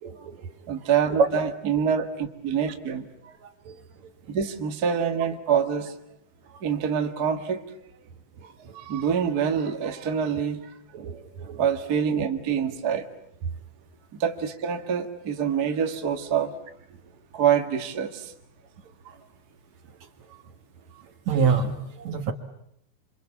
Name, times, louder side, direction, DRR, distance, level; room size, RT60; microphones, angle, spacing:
voice 1, 0.0-0.5 1.2-1.3 3.4-3.8 6.5-6.6 8.7-8.8 10.3-10.4 10.9-11.6 19.1-19.2 21.3-22.3, right 5 dB, 60° right, 7 dB, 2.3 m, -26 dB
voice 2, 0.7-3.3 4.3-5.9 6.6-7.6 8.4-10.7 11.6-13.0 14.2-16.5 17.3-18.3, right 7 dB, 35° right, 5 dB, 1.5 m, -26 dB
27.5 x 26.0 x 8.4 m, 0.74 s
omnidirectional pair, 4.3 m